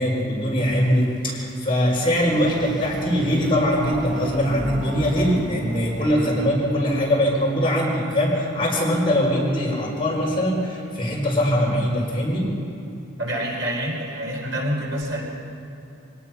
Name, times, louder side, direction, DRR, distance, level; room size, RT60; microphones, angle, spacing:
voice 1, 0.0-12.5, equal, 25° left, -4 dB, 4.9 m, -22 dB
sound 1, 0.6-7.4, equal, 45° right, 6.9 m, -38 dB
voice 2, 13.2-15.2, equal, 65° right, -2 dB, 4.5 m, -27 dB
24.5 x 19.0 x 6.0 m, 2.8 s
head